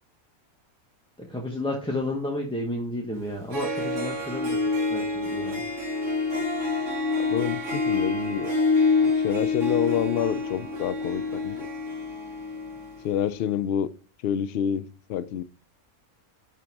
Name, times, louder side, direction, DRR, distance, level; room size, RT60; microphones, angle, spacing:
voice 1, 1.2-4.6 4.9-5.6, left 1 dB, 5° left, 1.0 m, -31 dB
Harp, 3.2-3.3 3.5-13.0, left 3 dB, 55° right, 2.2 m, -27 dB
voice 2, 7.2-8.6 9.0-11.7 13.0-13.9 14.2-15.4, left 9 dB, 75° left, 0.5 m, -28 dB
11.0 x 3.8 x 4.6 m
omnidirectional pair, 1.6 m